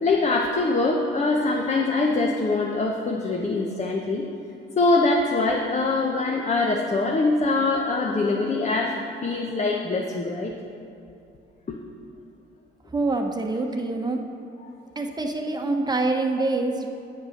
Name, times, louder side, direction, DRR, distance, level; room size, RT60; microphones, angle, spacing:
voice 1, 0.0-4.3 4.8-8.9 9.2-10.5 11.7-11.8, left 3 dB, 35° left, 0 dB, 1.0 m, -23 dB
voice 2, 12.9-14.2 15.0-16.9, right 2 dB, 20° right, 3 dB, 1.1 m, -25 dB
9.0 x 7.9 x 6.5 m, 2.6 s
cardioid pair, 90°, 20 cm